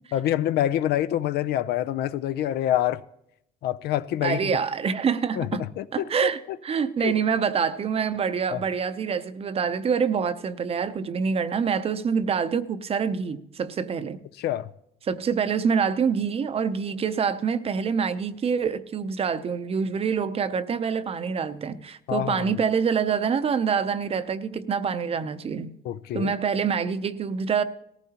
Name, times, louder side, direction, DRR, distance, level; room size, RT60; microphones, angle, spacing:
voice 1, 0.1-3.0 3.6-4.6 5.4-6.3 7.0-7.1 8.5-8.6 14.4-14.7 22.1-22.5 25.8-26.3, left 12 dB, 70° left, 0.5 m, -26 dB
voice 2, 4.2-5.7 5.9-14.2 15.1-25.7 26.1-27.6, right 6 dB, 35° right, 0.6 m, -26 dB
18.5 x 14.5 x 2.9 m
cardioid pair, 110°, 17 cm